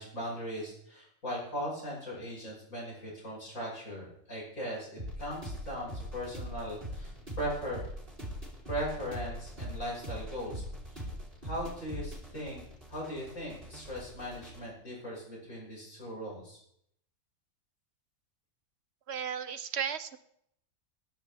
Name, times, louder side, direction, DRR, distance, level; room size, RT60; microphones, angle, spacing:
voice 1, 0.0-7.8 8.7-10.6 10.9-11.0 11.4-12.6 12.9-16.6, equal, 90° left, -3 dB, 6.3 m, -39 dB
sound 1, 5.0-14.6, equal, 40° right, 3.8 m, -42 dB
voice 2, 19.1-20.2, right 7 dB, 60° right, 13 dB, 0.9 m, -34 dB
21.5 x 10.5 x 3.5 m, 0.74 s
omnidirectional pair, 1.4 m